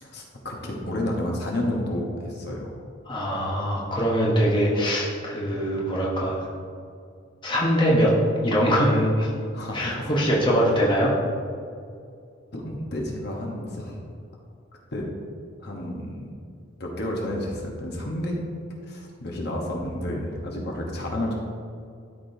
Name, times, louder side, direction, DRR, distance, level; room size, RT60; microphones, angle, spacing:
voice 1, 0.0-2.7 9.5-10.1 12.5-14.0 14.9-15.1 15.6-16.3 16.8-18.4 18.8-21.3, left 1 dB, 55° left, -1 dB, 1.0 m, -30 dB
voice 2, 3.1-6.5 7.4-8.1 8.4-9.3 9.7-11.1, equal, 25° left, -4 dB, 1.1 m, -22 dB
12.5 x 5.0 x 2.7 m, 2.3 s
head